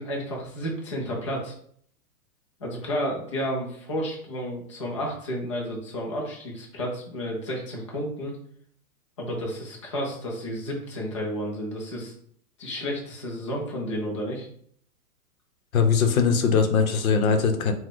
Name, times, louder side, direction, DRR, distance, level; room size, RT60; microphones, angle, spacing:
voice 1, 0.0-1.5 2.6-8.3 9.2-12.1 12.6-14.5, equal, 20° left, -2 dB, 0.4 m, -31 dB
voice 2, 15.7-17.7, left 5 dB, 60° left, 6 dB, 0.8 m, -21 dB
4.0 x 2.2 x 4.6 m, 0.64 s
hypercardioid pair, 165°, 46 cm